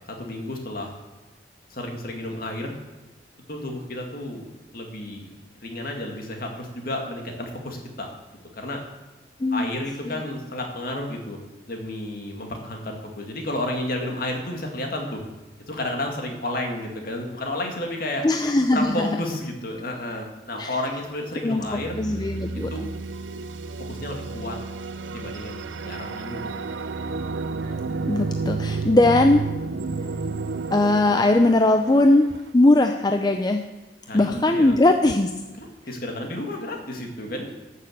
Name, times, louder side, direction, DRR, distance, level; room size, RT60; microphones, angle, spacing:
voice 1, 0.1-0.9 1.7-2.7 3.5-4.5 4.7-8.1 8.5-8.8 9.5-11.4 11.7-15.2 15.7-18.3 18.7-22.0 22.7-22.8 23.9-24.6 25.0-26.6 34.1-34.7 35.6-37.5, left 1 dB, 50° left, 2 dB, 2.1 m, -31 dB
voice 2, 18.2-19.1 20.6-20.7 21.4-22.9 28.1-29.5 30.7-32.3 32.5-33.6 34.1-35.3, left 2 dB, 20° left, 6 dB, 0.5 m, -19 dB
sound 1, 20.5-21.1 21.6-32.3, right 3 dB, 85° right, 0.6 m, -31 dB
12.5 x 6.7 x 7.8 m, 1.2 s
head